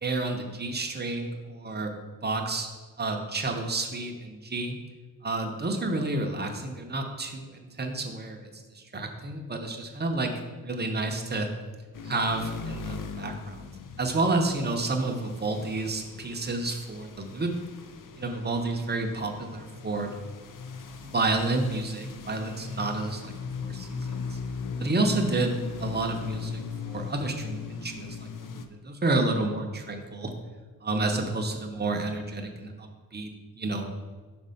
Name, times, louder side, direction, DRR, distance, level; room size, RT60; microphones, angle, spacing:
voice 1, 0.0-1.9 2.2-2.7 3.0-4.7 5.2-11.5 12.0-13.7 14.0-17.5 18.2-20.1 21.0-23.3 23.6-24.4 24.8-30.3 30.8-33.9, right 2 dB, 30° right, 3 dB, 0.7 m, -30 dB
sound 1, 11.9-28.7, left 5 dB, 60° left, 0.5 m, -39 dB
5.1 x 4.2 x 5.6 m, 1.4 s
wide cardioid pair, 160°, 36 cm